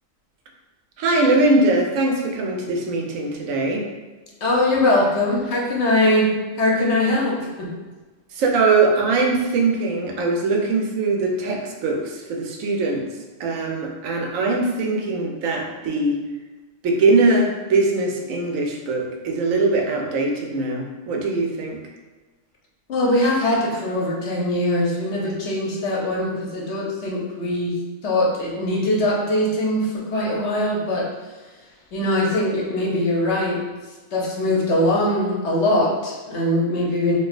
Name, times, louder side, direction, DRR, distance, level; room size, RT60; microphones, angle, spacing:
voice 1, 1.0-3.8 8.3-13.0 13.4-16.2 16.8-21.8, right 3 dB, 75° right, 0 dB, 1.0 m, -21 dB
voice 2, 4.4-6.3 6.6-7.7 22.9-27.7 28.0-31.1 31.9-33.6 34.1-37.2, left 1 dB, 60° left, -3 dB, 0.9 m, -21 dB
4.3 x 2.3 x 2.4 m, 1.3 s
omnidirectional pair, 1.4 m